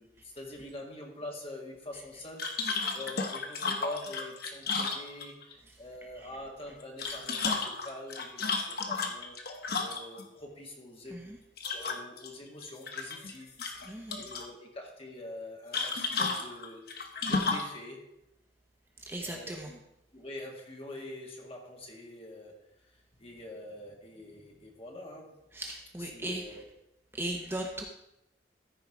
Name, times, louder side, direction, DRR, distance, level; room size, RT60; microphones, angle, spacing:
voice 1, 0.0-2.5 2.9-9.4 9.8-11.4 11.7-13.5 14.2-18.0 19.2-19.8 20.1-25.4 26.0-26.7, left 1 dB, 35° left, 0 dB, 1.9 m, -45 dB
sound 1, 2.4-5.5 6.8-10.2 11.6-12.3 12.6-13.3 13.6-14.5 15.7-17.7, left 4 dB, 60° left, 1.2 m, -33 dB
voice 2, 13.8-14.2 19.1-19.7 25.5-26.6 27.1-27.8, right 1 dB, 15° right, 1 dB, 0.9 m, -37 dB
14.0 x 4.8 x 4.8 m, 0.86 s
head